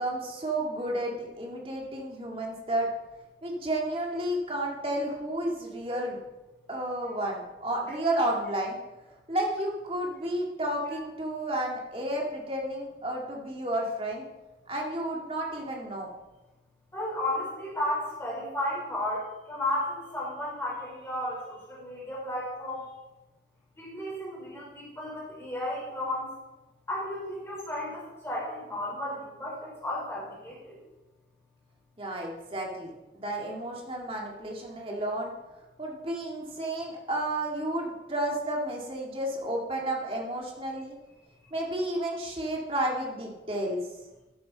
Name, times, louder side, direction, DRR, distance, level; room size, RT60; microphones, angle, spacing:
voice 1, 0.0-2.9 3.4-6.2 6.7-8.8 9.3-14.2 14.7-16.1 32.0-35.3 35.8-41.0 41.5-43.8, right 1 dB, 30° right, -1 dB, 2.1 m, -31 dB
voice 2, 16.9-22.9 23.8-26.3 26.9-30.8, left 1 dB, 15° left, -5 dB, 4.3 m, -33 dB
13.0 x 8.5 x 4.1 m, 1.1 s
head